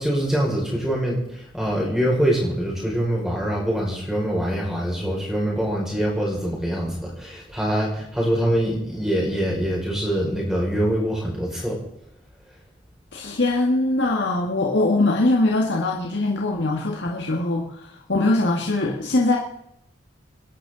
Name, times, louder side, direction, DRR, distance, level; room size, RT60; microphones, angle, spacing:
voice 1, 0.0-11.8, equal, 5° right, -3 dB, 5.6 m, -24 dB
voice 2, 13.1-19.4, left 2 dB, 55° left, -1 dB, 1.8 m, -22 dB
27.0 x 11.5 x 4.0 m, 0.78 s
head